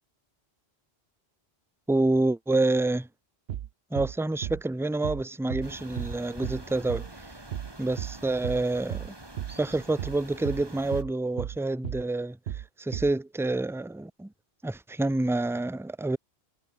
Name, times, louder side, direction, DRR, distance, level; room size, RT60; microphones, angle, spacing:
voice 1, 1.9-3.1 3.9-7.1 7.8-9.1 9.6-14.3 14.6-16.2, right 2 dB, 5° right, 0.8 m, -28 dB
sound 1, 3.5-3.7 4.0-4.2 4.4-4.6 5.0-5.2 5.5-5.7 6.0-6.2 6.4-6.6 6.9-7.1 7.5-7.7 8.0-8.2 8.4-8.6 8.9-9.1 9.4-9.6 10.0-10.2 10.4-10.6 10.9-11.1 11.4-11.6 11.8-12.0 12.5-12.7 12.9-13.1, right 11 dB, 70° right, 0.9 m, -34 dB
sound 2, 5.6-11.0, right 1 dB, 20° right, 2.3 m, -46 dB
omnidirectional pair, 1.1 m